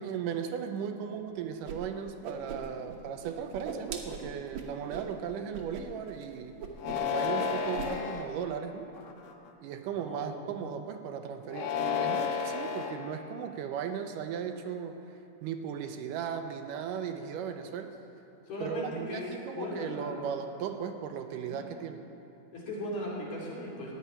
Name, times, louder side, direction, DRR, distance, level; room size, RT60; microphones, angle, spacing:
voice 1, 0.0-6.6 6.9-8.9 9.6-15.0 15.4-18.0 18.6-22.0, right 7 dB, 85° right, 6 dB, 2.2 m, -37 dB
Whoosh swoosh swish, 1.7-1.8 2.0-3.0 3.2-5.1 5.5-5.8 6.1-6.3 6.6-7.1 7.4-7.9, right 6 dB, 65° right, 2.1 m, -40 dB
sound 1, 6.8-8.3 9.0-9.5 11.5-13.0, left 7 dB, 75° left, 1.5 m, -31 dB
voice 2, 9.9-10.6 18.5-19.2 19.5-20.2 21.4-21.6 22.5-23.9, left 1 dB, 55° left, -5 dB, 3.9 m, -38 dB
16.0 x 5.6 x 9.8 m, 2.8 s
omnidirectional pair, 3.9 m